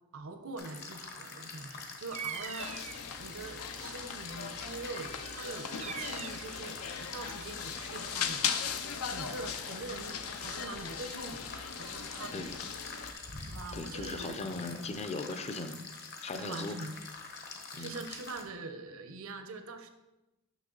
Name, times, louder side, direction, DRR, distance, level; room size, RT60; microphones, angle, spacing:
voice 1, 0.1-8.7 9.1-11.5 11.8-12.5 13.4-14.8 16.3-17.0 17.8-19.9, right 3 dB, 70° right, 8 dB, 0.7 m, -44 dB
sound 1, 0.6-18.4, left 4 dB, 50° left, 0.9 m, -46 dB
Bird vocalization bird call bird song, 2.1-3.1 4.9-6.5, right 7 dB, 30° right, 0.4 m, -42 dB
sound 2, 2.6-13.1, left 7 dB, 85° left, 0.5 m, -39 dB
voice 2, 13.7-15.8 16.2-16.8 17.7-18.0, left 3 dB, 30° left, 8 dB, 0.5 m, -38 dB
6.2 x 5.9 x 3.8 m, 1.0 s
head